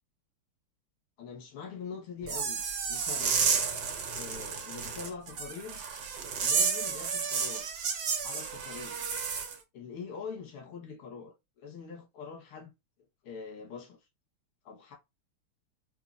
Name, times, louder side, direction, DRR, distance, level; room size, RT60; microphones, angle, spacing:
voice 1, 1.2-2.6 2.9-3.4 4.2-5.8 6.4-7.7 8.2-9.0 9.7-12.7 13.2-14.0 14.6-15.0, left 5 dB, 80° left, 2.2 m, -43 dB
sound 1, 2.2-9.5, right 6 dB, 55° right, 1.4 m, -31 dB
4.7 x 2.8 x 2.4 m
omnidirectional pair, 2.4 m